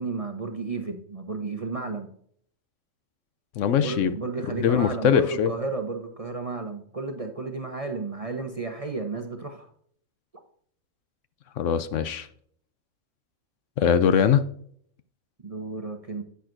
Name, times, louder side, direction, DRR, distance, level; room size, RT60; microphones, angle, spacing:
voice 1, 0.0-2.1 3.8-9.7 15.4-16.2, right 3 dB, 35° right, 5 dB, 0.7 m, -32 dB
voice 2, 3.6-4.1 4.6-5.5 11.6-12.3 13.8-14.4, left 8 dB, 70° left, 12 dB, 0.9 m, -21 dB
10.5 x 8.1 x 2.6 m, 0.63 s
omnidirectional pair, 1.4 m